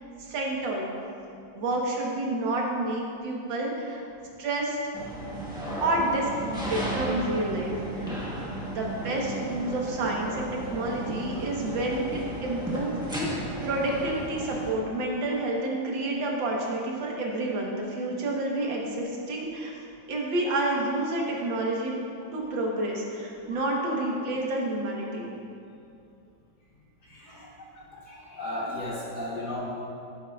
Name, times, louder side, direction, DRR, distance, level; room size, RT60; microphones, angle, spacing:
voice 1, 0.2-0.9 1.5-4.0 4.4-4.8 5.8-8.2 8.7-12.0 12.4-13.3 13.6-19.7 20.1-21.9 22.3-25.3, right 2 dB, 80° right, -1 dB, 1.9 m, -29 dB
sound 1, 4.9-14.7, right 1 dB, 5° right, 1.0 m, -34 dB
voice 2, 6.6-6.9 8.0-8.3 8.6-8.7 11.3-11.4 23.5-23.6 27.0-29.6, left 1 dB, 60° left, -7 dB, 2.6 m, -37 dB
14.0 x 7.2 x 2.3 m, 2.6 s
omnidirectional pair, 2.0 m